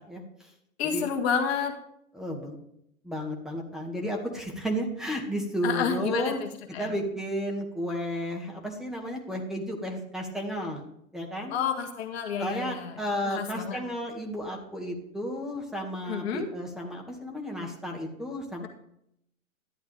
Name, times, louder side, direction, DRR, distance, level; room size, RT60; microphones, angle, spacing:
voice 1, 0.1-0.5 0.9-1.1 2.1-2.6 3.0-6.4 6.8-10.8 11.1-11.5 12.4-18.7, equal, ahead, 0 dB, 2.1 m, -33 dB
voice 2, 0.8-1.7 5.6-6.9 11.5-12.9 13.3-13.8 16.1-16.5, left 7 dB, 45° left, 4 dB, 1.8 m, -30 dB
14.0 x 11.5 x 3.5 m, 0.74 s
hypercardioid pair, 125°, 43 cm